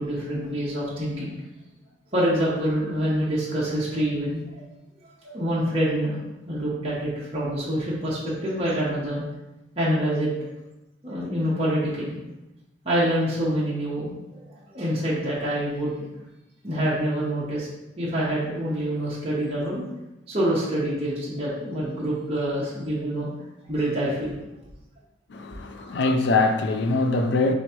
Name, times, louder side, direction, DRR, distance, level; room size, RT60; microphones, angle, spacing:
voice 1, 0.0-1.3 2.1-4.4 5.2-6.2 6.5-9.2 9.8-10.3 11.0-12.2 12.8-14.4 14.7-15.9 16.6-17.7 18.0-19.8 20.3-23.3 23.7-24.4 25.7-25.9, equal, 30° right, 0.9 m, -26 dB
voice 2, 25.3-27.5, left 3 dB, 60° left, 0.4 m, -23 dB
3.4 x 3.0 x 4.3 m
head